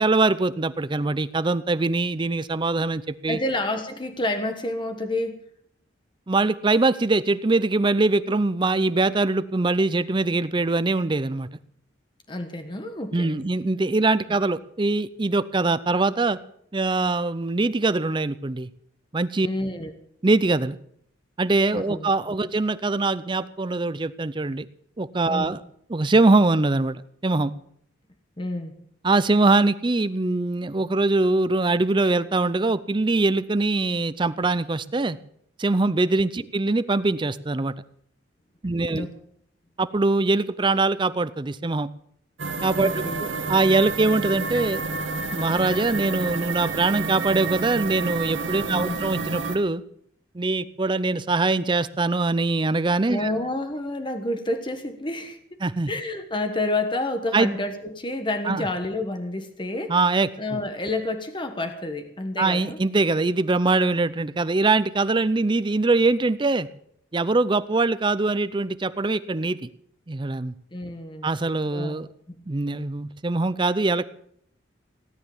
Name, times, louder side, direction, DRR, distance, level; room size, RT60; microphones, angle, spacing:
voice 1, 0.0-3.4 6.3-11.5 13.1-16.4 16.7-18.7 19.1-19.5 20.2-20.8 21.4-24.7 25.0-25.6 25.9-27.5 29.0-35.2 35.6-37.7 38.6-39.1 39.8-41.9 42.6-44.8 45.3-49.8 50.3-53.3 55.6-55.9 57.3-57.5 58.5-58.7 59.9-60.3 62.4-66.7 67.1-69.7 70.1-70.5 71.2-72.1 72.5-74.0, right 3 dB, 25° right, 14 dB, 0.5 m, -23 dB
voice 2, 3.3-5.4 12.3-13.3 19.4-19.9 21.7-22.4 25.3-25.5 28.4-28.7 38.9-39.1 42.8-43.2 44.6-44.7 48.7-49.1 53.1-55.4 55.9-59.9 60.4-62.8 70.7-71.3 71.7-72.0 72.3-72.4, left 2 dB, 25° left, 6 dB, 1.3 m, -29 dB
sound 1, 42.4-49.6, right 4 dB, 80° right, 2.0 m, -29 dB
17.5 x 10.5 x 7.1 m, 0.68 s
head